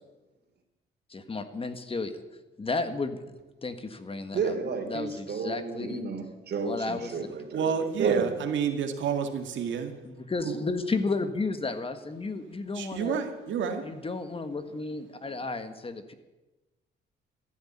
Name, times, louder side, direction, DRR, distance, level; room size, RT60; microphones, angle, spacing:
voice 1, 1.1-2.2 2.6-3.2 3.6-4.6 4.9-6.0 6.6-7.2 10.0-13.2 13.8-16.1, left 3 dB, 30° left, 9 dB, 1.6 m, -33 dB
voice 2, 4.3-7.7 8.0-8.3, right 5 dB, 55° right, 5 dB, 3.3 m, -31 dB
voice 3, 7.5-10.1 10.4-10.6 12.7-13.8, right 6 dB, 70° right, 5 dB, 2.1 m, -30 dB
14.5 x 11.0 x 8.8 m, 1.1 s
cardioid pair, 90°, 20 cm